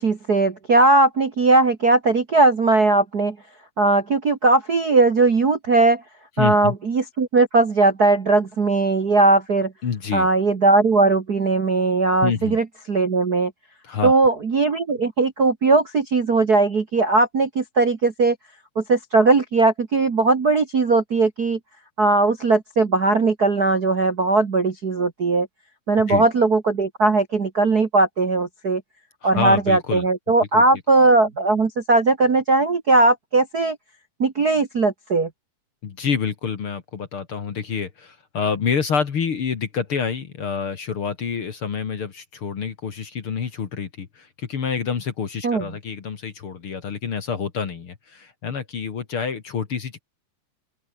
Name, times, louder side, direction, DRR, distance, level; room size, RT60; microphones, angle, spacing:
voice 1, 0.0-3.3 3.8-6.0 6.4-9.7 10.1-13.5 14.0-18.3 18.7-21.6 22.0-25.5 25.9-28.8 29.2-33.8 34.2-35.3 45.4-45.6, right 3 dB, 40° right, 1.6 m, -19 dB
voice 2, 6.4-6.7 9.8-10.3 12.2-12.6 13.8-14.1 26.1-26.3 29.2-30.1 30.5-30.8 35.8-50.0, left 6 dB, 45° left, 2.4 m, -27 dB
open air
omnidirectional pair, 3.9 m